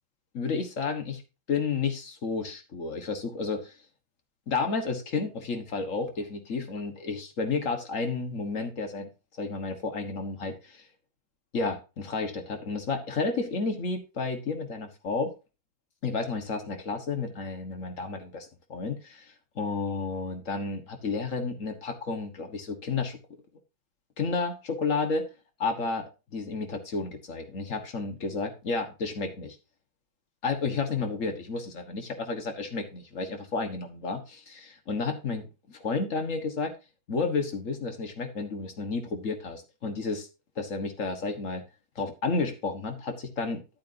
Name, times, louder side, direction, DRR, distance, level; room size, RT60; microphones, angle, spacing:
voice 1, 0.3-1.2 1.5-3.7 4.5-9.1 9.4-10.9 11.5-15.3 16.0-23.2 24.2-25.3 25.6-29.6 30.4-36.7 37.1-40.3 40.6-41.6 41.9-43.6, left 4 dB, 40° left, 7 dB, 1.6 m, -31 dB
11.0 x 8.6 x 2.7 m, 0.29 s
omnidirectional pair, 2.3 m